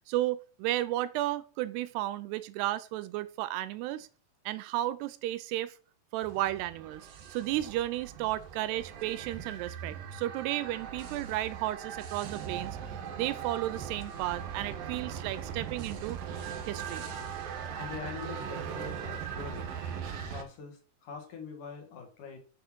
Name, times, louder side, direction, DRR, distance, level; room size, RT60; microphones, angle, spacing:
voice 1, 0.1-4.1 4.5-5.7 6.1-12.8 13.1-16.2 16.7-17.1, right 15 dB, 85° right, 2.8 m, -33 dB
sound 1, 6.2-20.4, right 7 dB, 65° right, 2.9 m, -40 dB
voice 2, 17.8-19.7 20.2-22.4, left 5 dB, 55° left, 3.3 m, -43 dB
8.0 x 6.9 x 6.1 m
omnidirectional pair, 4.7 m